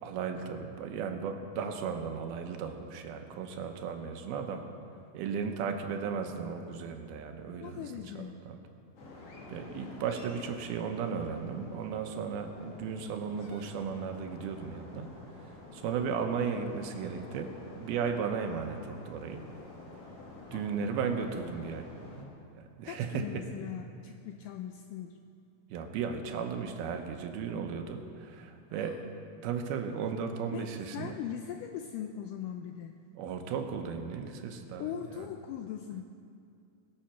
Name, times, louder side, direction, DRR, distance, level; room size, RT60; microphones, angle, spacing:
voice 1, 0.0-4.6 5.1-7.8 8.2-8.6 9.5-15.1 15.4-19.4 20.5-21.9 22.2-23.4 25.7-29.0 29.4-31.1 33.2-34.9 35.2-35.3, right 6 dB, 90° right, 5 dB, 2.8 m, -35 dB
voice 2, 7.6-8.4 20.5-20.6 22.9-25.2 28.7-29.0 30.5-30.7 30.9-33.0 34.8-36.0, left 9 dB, 85° left, 6 dB, 1.9 m, -40 dB
sound 1, 9.0-22.2, left 2 dB, 50° left, 2.2 m, -49 dB
21.0 x 7.7 x 5.7 m, 2.5 s
omnidirectional pair, 4.3 m